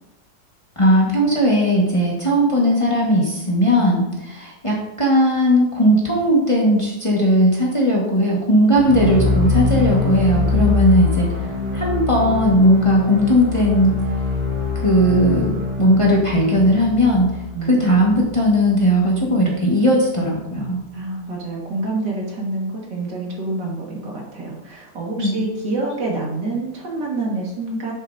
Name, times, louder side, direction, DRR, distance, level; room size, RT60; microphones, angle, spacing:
voice 1, 0.8-11.3 11.7-14.1 14.8-17.3 17.6-20.8 25.2-25.4, equal, 20° left, -3 dB, 1.5 m, -17 dB
sound 1, 8.7-18.8, left 4 dB, 35° right, 3.3 m, -24 dB
voice 2, 20.9-27.9, right 2 dB, 70° right, -2 dB, 2.4 m, -27 dB
9.9 x 7.3 x 2.7 m, 0.88 s
omnidirectional pair, 1.9 m